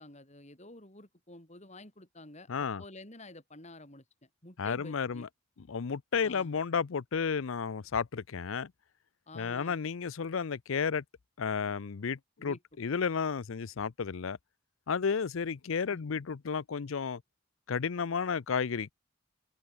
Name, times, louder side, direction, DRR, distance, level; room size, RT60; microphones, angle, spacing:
voice 1, 0.0-5.3 6.2-6.5 9.3-9.8 12.4-12.6 15.9-16.0, left 2 dB, 35° left, 5.8 m, -50 dB
voice 2, 2.5-2.8 4.6-5.3 5.7-8.7 9.3-11.0 11.4-14.4 14.9-17.2 17.7-18.9, left 6 dB, 80° left, 0.6 m, -32 dB
open air
head